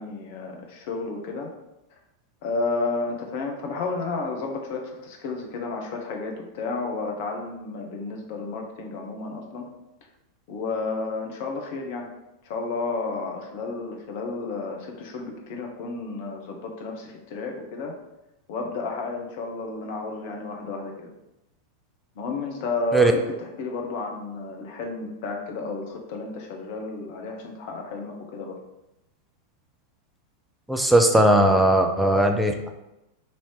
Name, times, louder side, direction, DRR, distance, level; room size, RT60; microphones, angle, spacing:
voice 1, 0.0-1.5 2.4-9.7 10.5-12.1 12.4-17.9 18.5-21.1 22.2-28.6, left 3 dB, 50° left, 2 dB, 0.8 m, -32 dB
voice 2, 30.7-32.7, right 1 dB, 5° right, 4 dB, 0.4 m, -18 dB
3.1 x 2.8 x 4.5 m, 0.92 s
figure-of-eight pair, 90°, 0 cm